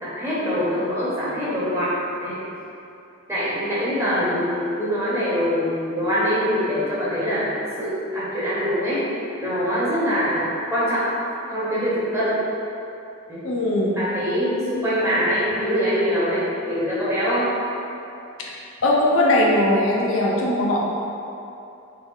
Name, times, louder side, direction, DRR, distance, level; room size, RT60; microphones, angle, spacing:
voice 1, 0.0-1.9 2.2-2.4 3.3-7.5 7.8-9.0 9.4-11.1 11.5-12.3 13.3-13.5 14.0-17.5, equal, 15° right, -10 dB, 1.1 m, -23 dB
voice 2, 13.4-13.9 18.4-18.5 18.8-20.8, left 1 dB, 65° left, -4 dB, 0.6 m, -20 dB
5.6 x 2.0 x 3.9 m, 2.7 s
head